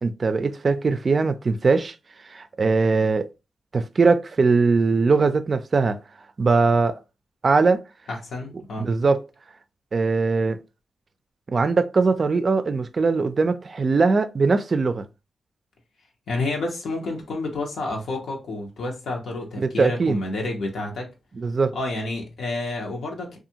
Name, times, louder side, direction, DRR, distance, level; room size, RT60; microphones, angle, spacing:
voice 1, 0.0-1.9 2.3-3.3 3.7-6.0 6.4-7.0 7.4-7.8 8.8-9.2 9.9-10.6 11.5-15.0 19.6-20.2 21.4-21.8, right 4 dB, 45° right, 0.3 m, -21 dB
voice 2, 8.1-8.9 16.3-21.1 21.7-23.4, left 2 dB, 85° left, 0.8 m, -29 dB
2.6 x 2.3 x 2.8 m
cardioid pair, 75°, 0 cm